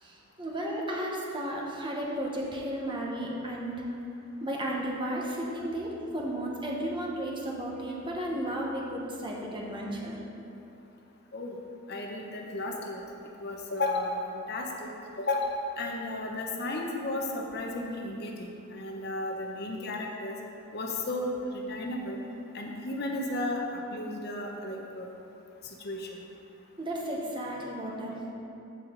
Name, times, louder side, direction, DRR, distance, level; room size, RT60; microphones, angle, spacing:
voice 1, 0.0-3.8 4.4-10.2 26.8-28.3, right 1 dB, 25° right, -2 dB, 1.1 m, -34 dB
voice 2, 11.9-13.0 13.4-14.9 15.2-20.4 20.7-22.2 22.5-23.6 23.9-25.1 25.8-26.1, left 2 dB, 50° left, 1 dB, 0.8 m, -33 dB
14.0 x 4.8 x 3.8 m, 2.8 s
head